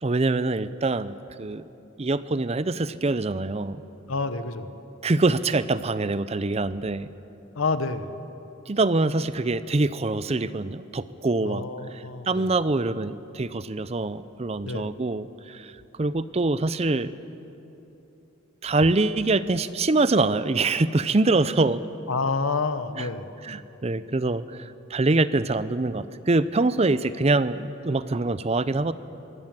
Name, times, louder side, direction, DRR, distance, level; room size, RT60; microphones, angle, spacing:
voice 1, 0.0-1.7 2.0-3.8 5.0-7.1 8.7-11.6 11.9-15.7 16.0-17.2 18.6-21.8 23.0-23.1 23.4-28.9, right 2 dB, 30° right, 15 dB, 0.5 m, -24 dB
voice 2, 4.1-4.8 7.5-8.2 11.4-12.5 14.6-14.9 22.1-23.3, left 4 dB, 75° left, 11 dB, 1.1 m, -28 dB
22.5 x 16.5 x 7.5 m, 3.0 s
head